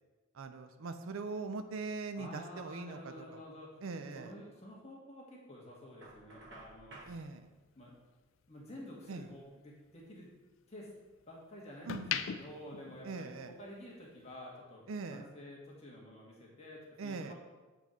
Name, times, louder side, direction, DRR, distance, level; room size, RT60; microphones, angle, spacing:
voice 1, 0.3-3.4 3.8-4.3 7.1-7.5 9.1-9.2 11.8-12.2 13.0-13.5 14.9-15.3 17.0-17.3, right 4 dB, 70° right, 9 dB, 0.4 m, -41 dB
voice 2, 2.2-3.7 4.1-7.2 7.7-8.0 8.5-10.3 10.7-10.9 11.3-14.8 15.1-17.3, left 1 dB, 30° left, -4 dB, 1.5 m, -50 dB
Knock, 6.0-7.2, right 2 dB, 55° right, 1.3 m, -53 dB
sound 1, 7.1-9.4 9.8-11.2 11.7-13.8 14.1-14.4, left 8 dB, 65° left, 0.4 m, -42 dB
7.2 x 3.8 x 4.2 m, 1.2 s
head